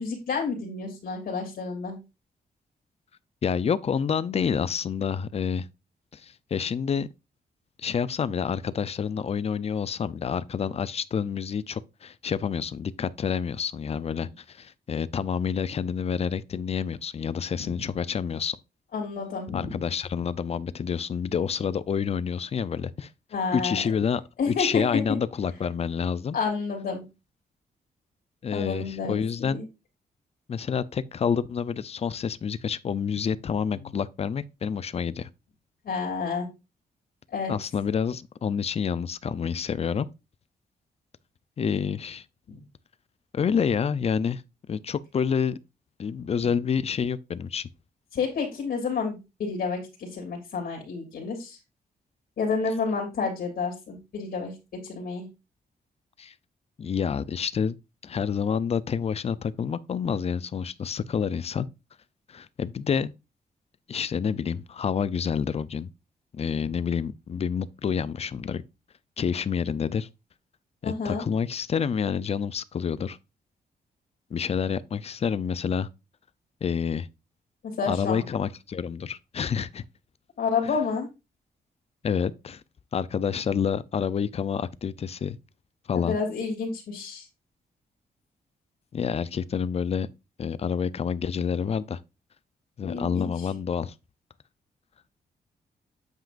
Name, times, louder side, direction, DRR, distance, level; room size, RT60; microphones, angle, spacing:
voice 1, 0.0-1.9 17.6-17.7 18.9-19.8 23.3-23.8 24.4-24.8 26.3-27.0 28.5-29.6 35.8-36.5 37.3-37.5 48.1-51.6 52.4-55.2 70.8-71.2 77.6-78.2 80.4-81.1 85.9-87.3 92.8-93.5, left 5 dB, 70° left, 3.1 m, -30 dB
voice 2, 3.4-5.7 6.1-7.1 7.8-18.6 19.5-23.1 23.5-24.2 24.5-26.4 28.4-29.6 30.5-35.3 37.5-40.1 41.6-42.2 43.3-44.4 44.7-45.6 46.0-47.7 56.2-56.3 56.8-57.8 58.0-61.7 62.3-63.1 63.9-65.9 66.3-68.6 69.2-70.1 70.8-73.2 74.3-75.9 76.6-77.1 77.9-79.8 80.6-80.7 82.0-82.6 82.9-85.4 85.9-86.2 88.9-90.1 90.4-92.0 92.8-93.9, left 7 dB, 40° left, 0.5 m, -28 dB
9.1 x 7.4 x 2.6 m
wide cardioid pair, 125°, 16 cm